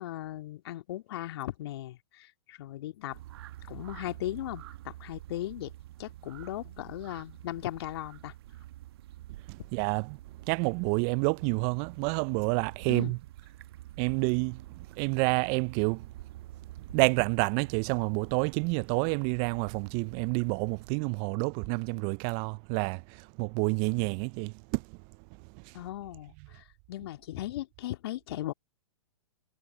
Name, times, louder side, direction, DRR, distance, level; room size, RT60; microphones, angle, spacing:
voice 1, 0.0-3.2 3.6-5.7 6.0-8.3 12.9-13.2 25.7-28.5, left 14 dB, 55° left, 2.1 m, -38 dB
sound 1, 3.1-21.0, right 14 dB, 50° right, 1.4 m, -48 dB
voice 2, 9.5-10.2 10.5-13.2 14.0-14.6 15.0-16.1 16.9-25.0 25.5-25.8, right 34 dB, 35° right, 0.5 m, -29 dB
figure-of-eight pair, 115°, 16 cm